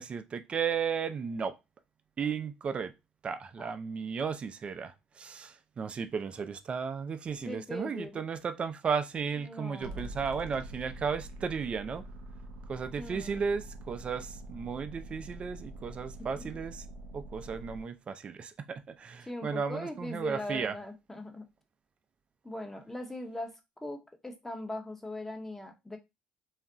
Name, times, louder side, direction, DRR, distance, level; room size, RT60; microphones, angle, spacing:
voice 1, 0.0-1.6 2.2-2.9 3.2-12.0 12.7-16.8 17.1-20.7, right 6 dB, 40° right, 0.4 m, -34 dB
voice 2, 7.4-8.1 9.4-10.1 13.0-13.4 16.4-16.5 19.2-21.5 22.4-26.0, left 1 dB, 10° left, 0.8 m, -40 dB
sound 1, 9.8-17.8, right 1 dB, 85° right, 0.7 m, -45 dB
2.4 x 2.1 x 3.7 m
supercardioid pair, 75°, 3 cm